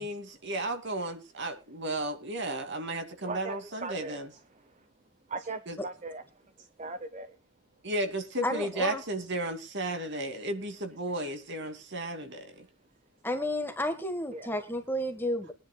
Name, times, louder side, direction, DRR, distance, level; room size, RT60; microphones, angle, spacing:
voice 1, 0.0-4.3 5.7-5.8 7.8-12.7, right 1 dB, 55° right, 6 dB, 2.6 m, -34 dB
voice 2, 3.2-3.6 3.8-4.2 5.3-6.2 6.8-7.3 14.3-14.5, right 3 dB, 35° right, 10 dB, 0.9 m, -38 dB
voice 3, 8.4-9.0 13.2-15.5, left 1 dB, 10° left, 6 dB, 1.5 m, -31 dB
22.5 x 10.5 x 2.3 m, 0.29 s
head